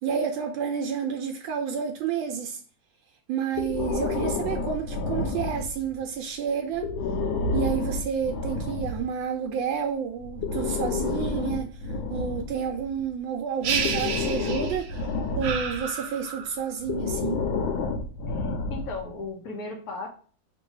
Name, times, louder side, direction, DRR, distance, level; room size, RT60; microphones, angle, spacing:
voice 1, 0.0-2.6 3.3-6.9 7.5-17.5, right 7 dB, 80° right, 1.3 m, -30 dB
Breathing, 3.5-6.0 6.7-9.1 10.2-13.0 13.6-15.9 16.8-19.1, left 3 dB, 80° left, 1.3 m, -30 dB
sound 1, 13.6-15.0 15.4-16.7, right 6 dB, 65° right, 0.9 m, -31 dB
voice 2, 18.3-20.1, left 3 dB, 55° left, 1.4 m, -36 dB
3.3 x 2.9 x 4.6 m
omnidirectional pair, 2.2 m